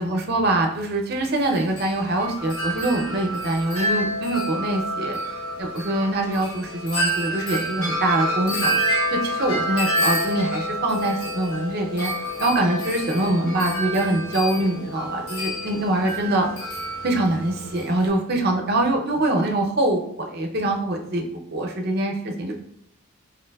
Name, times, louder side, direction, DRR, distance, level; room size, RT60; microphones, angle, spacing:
voice 1, 0.0-5.2 5.6-12.1 12.4-16.5 17.0-20.0 20.3-22.5, right 1 dB, 50° right, 2 dB, 0.5 m, -24 dB
Wind chime, 1.2-18.1, equal, 75° left, 0.9 m, -28 dB
3.9 x 3.0 x 2.2 m, 0.71 s
head